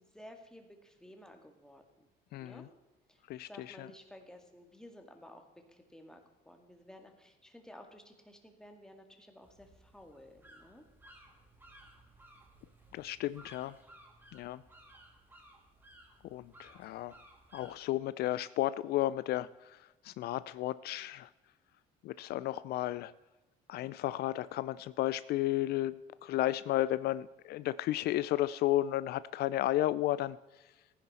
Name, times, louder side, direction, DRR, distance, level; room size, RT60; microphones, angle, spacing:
voice 1, 0.0-2.1 2.4-2.7 3.1-3.2 3.5-5.4 5.7-10.8, left 1 dB, 5° left, 4 dB, 1.9 m, -54 dB
voice 2, 2.3-2.7 3.3-3.9 12.9-13.8 14.3-14.6 16.2-17.1 17.5-21.3 22.0-23.1 23.7-30.7, left 14 dB, 70° left, 17 dB, 0.4 m, -33 dB
sound 1, 9.4-17.8, right 1 dB, 10° right, 2.3 m, -59 dB
15.0 x 10.0 x 4.2 m, 1.1 s
cardioid pair, 110°, 17 cm